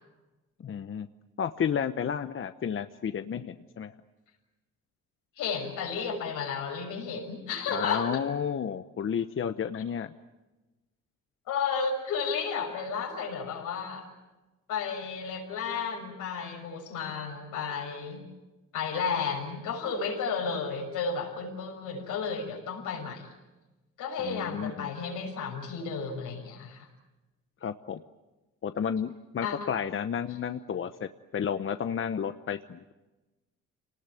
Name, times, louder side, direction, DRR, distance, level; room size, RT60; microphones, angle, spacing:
voice 1, 0.6-1.1 1.4-3.9 7.7-10.1 24.2-24.9 27.6-28.0 28.6-31.1 31.3-32.9, left 7 dB, 45° left, 10 dB, 0.9 m, -32 dB
voice 2, 5.4-8.1 11.5-14.1 14.7-18.3 18.7-23.3 24.0-26.9 29.4-29.6, left 5 dB, 90° left, 1 dB, 6.2 m, -33 dB
27.5 x 19.0 x 9.3 m, 1.1 s
cardioid pair, 90°, 30 cm